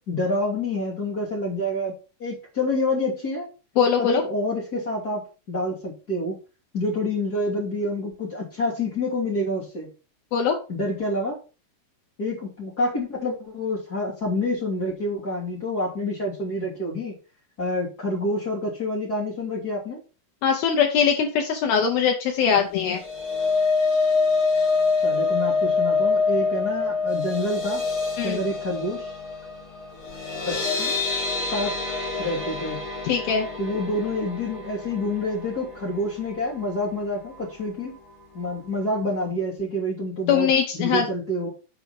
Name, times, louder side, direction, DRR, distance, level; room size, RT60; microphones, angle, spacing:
voice 1, 0.0-1.9 2.2-3.5 4.0-5.2 5.5-6.4 6.7-9.9 10.7-11.4 12.2-17.1 17.6-20.0 25.0-27.8 28.2-29.1 30.5-30.9 31.5-31.7 32.2-32.8 33.6-37.9 38.3-41.5, left 1 dB, 25° left, -5 dB, 2.4 m, -27 dB
voice 2, 3.8-4.2 10.3-10.5 20.4-23.0 28.2-28.4 33.1-33.5 40.3-41.0, left 7 dB, 85° left, 3 dB, 2.1 m, -21 dB
sound 1, 22.7-36.9 37.3-37.5 37.8-37.9, left 4 dB, 45° left, 1.9 m, -26 dB
7.8 x 4.6 x 5.9 m, 0.33 s
omnidirectional pair, 5.7 m